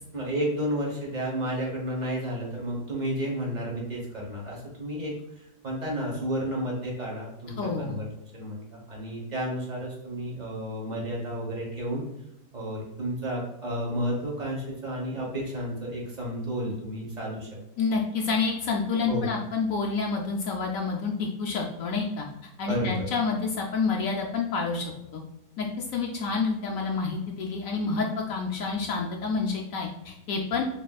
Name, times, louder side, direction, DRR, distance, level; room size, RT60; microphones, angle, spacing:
voice 1, 0.1-8.0 8.3-12.0 12.5-17.5 19.1-19.3 22.7-23.1, equal, 30° right, -2 dB, 1.1 m, -32 dB
voice 2, 7.6-7.9 17.8-22.3 22.6-24.8 25.1-25.2 25.6-25.7 25.9-30.6, left 4 dB, 70° left, 0 dB, 0.8 m, -28 dB
6.4 x 2.7 x 2.3 m, 0.85 s
omnidirectional pair, 1.8 m